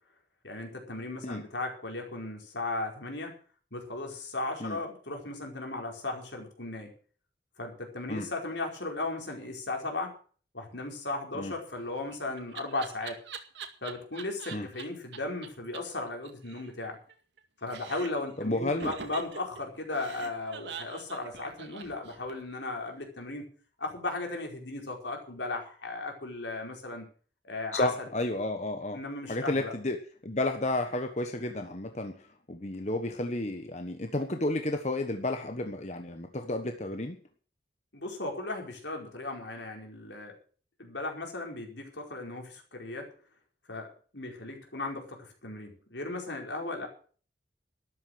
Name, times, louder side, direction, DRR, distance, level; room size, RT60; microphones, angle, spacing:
voice 1, 0.4-3.3 3.7-6.9 7.6-10.1 10.5-13.2 13.8-17.0 17.6-23.5 23.8-27.0 27.4-27.9 28.9-29.7 37.9-40.4 40.8-43.1 43.7-46.9, left 2 dB, 75° left, 2 dB, 4.8 m, -36 dB
Laughter, 11.7-14.8 15.1-15.2 15.4-15.5 15.7-15.8 16.1-17.4 17.7-18.3 18.8-22.5, right 5 dB, 70° right, 2.1 m, -43 dB
voice 2, 18.4-18.9 27.7-29.0 29.3-37.2, left 2 dB, 40° left, 6 dB, 1.2 m, -32 dB
13.0 x 11.5 x 6.4 m, 0.42 s
head